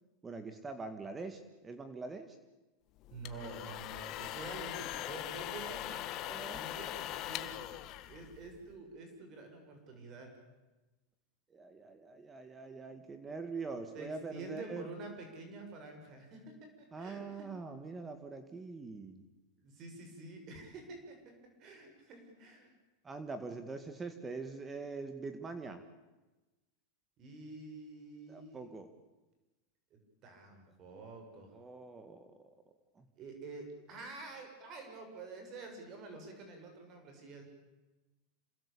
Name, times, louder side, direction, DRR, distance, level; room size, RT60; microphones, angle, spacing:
voice 1, 0.2-2.4 5.7-5.8 6.3-6.8 11.5-14.9 16.9-19.2 23.0-25.8 28.3-28.9 31.5-32.5 33.0-33.1, right 4 dB, 15° right, 9 dB, 1.9 m, -44 dB
sound 1, 3.0-8.8, left 14 dB, 45° left, 1.6 m, -41 dB
voice 2, 3.1-6.2 6.5-7.7 8.1-10.3 13.9-17.5 19.6-21.2 21.6-22.7 27.2-28.7 29.9-31.5 33.2-37.4, right 3 dB, 40° right, 4 dB, 6.8 m, -48 dB
27.5 x 20.5 x 8.7 m, 1.1 s
supercardioid pair, 130°, 0 cm